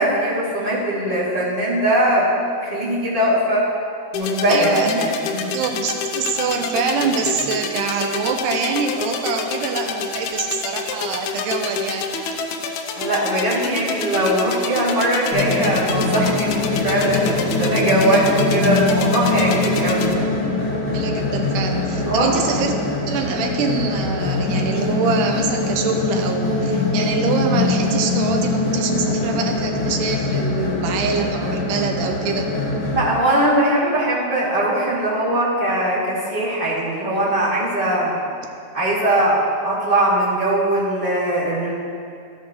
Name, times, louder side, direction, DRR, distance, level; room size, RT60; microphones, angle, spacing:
voice 1, 0.0-2.3 2.6-3.7 4.1-5.5 12.9-20.1 22.0-22.3 32.9-38.2 38.7-41.7, right 1 dB, 20° right, -10 dB, 1.9 m, -20 dB
sound 1, 4.1-20.1, left 5 dB, 85° left, 1.6 m, -28 dB
voice 2, 4.5-5.0 5.5-12.1 18.1-18.3 20.9-22.8 23.1-32.5, right 5 dB, 80° right, 4 dB, 2.0 m, -25 dB
sound 2, 15.3-33.1, left 3 dB, 50° left, 1.4 m, -22 dB
12.5 x 8.3 x 3.0 m, 2.4 s
omnidirectional pair, 4.1 m